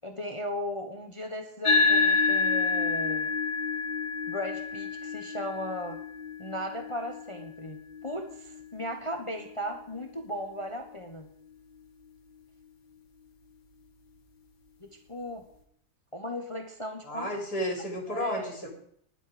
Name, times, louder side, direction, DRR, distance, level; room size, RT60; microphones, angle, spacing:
voice 1, 0.0-3.3 4.3-6.0 6.4-11.3 14.8-15.4 16.1-17.4 18.1-18.6, equal, 20° left, 4 dB, 1.3 m, -37 dB
sound 1, 1.6-10.4, left 4 dB, 85° left, 2.3 m, -29 dB
voice 2, 17.1-18.7, equal, 70° left, 1 dB, 4.4 m, -32 dB
18.5 x 12.0 x 5.2 m, 0.67 s
omnidirectional pair, 1.7 m